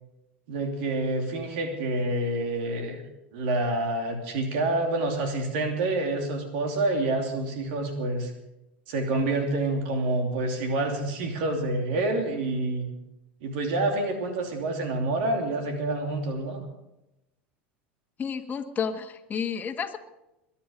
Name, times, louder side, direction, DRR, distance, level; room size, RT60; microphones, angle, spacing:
voice 1, 0.5-3.0 3.3-8.3 8.9-12.9 13.4-16.6, right 2 dB, 65° right, 4 dB, 2.9 m, -27 dB
voice 2, 18.2-20.0, left 7 dB, 30° left, 5 dB, 1.6 m, -31 dB
22.0 x 10.0 x 5.3 m, 0.92 s
hypercardioid pair, 85°, 6 cm